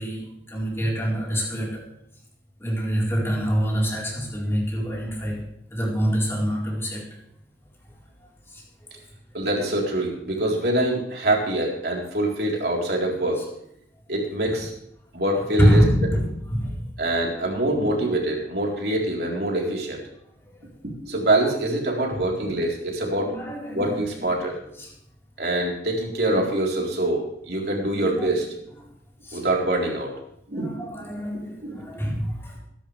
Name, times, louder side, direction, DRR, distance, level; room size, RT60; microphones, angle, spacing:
voice 1, 0.0-1.8 2.6-5.4 5.7-7.2 8.5-8.6 14.5-14.6 15.6-16.9 20.6-20.7 22.1-22.2 23.1-24.3 24.8-24.9 27.9-28.3 29.2-29.4 30.5-32.6, equal, 15° left, -4 dB, 4.3 m, -25 dB
voice 2, 9.3-13.4 14.1-14.7 15.1-15.8 17.0-20.0 21.0-23.4 23.7-24.5 25.4-28.5 29.3-30.1 30.5-30.9 31.6-31.9, right 1 dB, 60° right, -1 dB, 3.9 m, -24 dB
21.5 x 11.0 x 3.4 m, 0.73 s
head